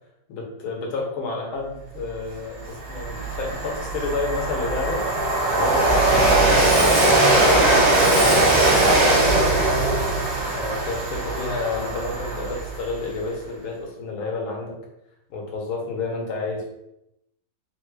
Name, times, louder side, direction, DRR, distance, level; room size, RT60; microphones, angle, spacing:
voice 1, 0.3-5.0 5.5-10.1 10.5-14.8 15.3-16.7, left 3 dB, 85° left, 0 dB, 1.8 m, -30 dB
Train, 2.1-2.2 2.6-13.0, right 2 dB, 35° right, 0.8 m, -20 dB
4.0 x 2.4 x 4.6 m, 0.82 s
omnidirectional pair, 2.2 m